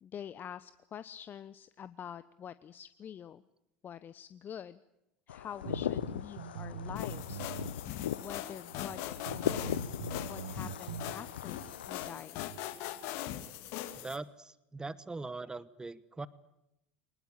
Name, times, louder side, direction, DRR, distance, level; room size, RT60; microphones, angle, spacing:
voice 1, 0.0-3.4 3.8-4.8 5.3-7.5 8.2-10.0 10.3-12.4, left 9 dB, 35° left, 15 dB, 0.9 m, -46 dB
sound 1, 5.3-12.1, left 10 dB, 80° left, 0.9 m, -39 dB
sound 2, 5.6-7.7 8.0-8.1 8.7-8.8 9.3-11.1, right 7 dB, 75° right, 1.7 m, -43 dB
sound 3, 7.0-14.2, left 12 dB, 60° left, 2.2 m, -41 dB
voice 2, 14.0-16.3, right 3 dB, 15° right, 18 dB, 1.2 m, -41 dB
23.5 x 20.5 x 9.0 m, 0.86 s
hypercardioid pair, 75°, 5 cm